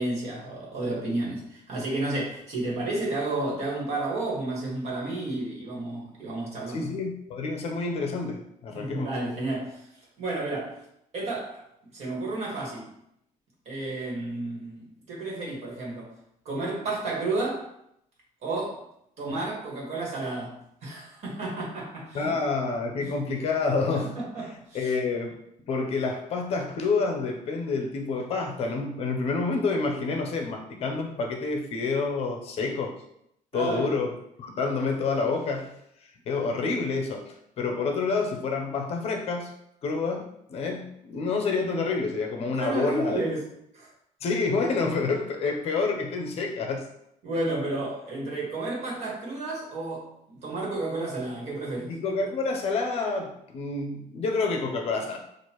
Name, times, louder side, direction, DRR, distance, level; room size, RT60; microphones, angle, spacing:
voice 1, 0.0-6.9 8.7-9.8 10.2-10.7 11.1-11.6 11.9-12.9 13.6-16.1 16.4-17.7 18.4-18.8 19.2-22.4 23.0-23.2 23.9-24.9 33.5-34.0 42.6-43.4 43.7-43.9 47.2-51.9, right 2 dB, 50° right, -3 dB, 1.6 m, -32 dB
voice 2, 6.7-9.1 19.3-19.4 22.1-24.2 24.7-25.3 25.7-33.0 33.5-35.7 36.3-39.5 39.8-43.3 44.2-46.9 51.9-55.2, left 4 dB, 45° left, 2 dB, 0.6 m, -28 dB
6.4 x 2.5 x 3.0 m, 0.76 s
cardioid pair, 170°, 14 cm